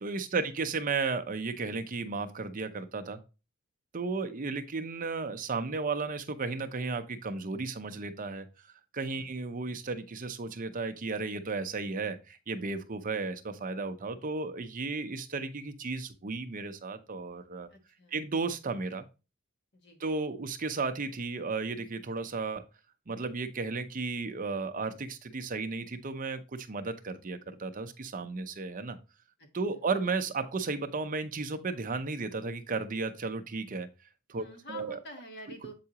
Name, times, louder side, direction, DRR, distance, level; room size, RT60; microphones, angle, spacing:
voice 1, 0.0-3.2 3.9-8.4 8.9-12.2 12.5-17.7 18.1-19.0 20.0-22.6 23.1-29.0 29.5-33.9 34.3-35.0, right 4 dB, 40° right, 8 dB, 0.7 m, -34 dB
voice 2, 17.7-18.2 19.7-20.0 29.4-29.8 34.4-35.7, left 1 dB, 55° left, 4 dB, 1.4 m, -48 dB
7.5 x 4.7 x 2.9 m, 0.30 s
head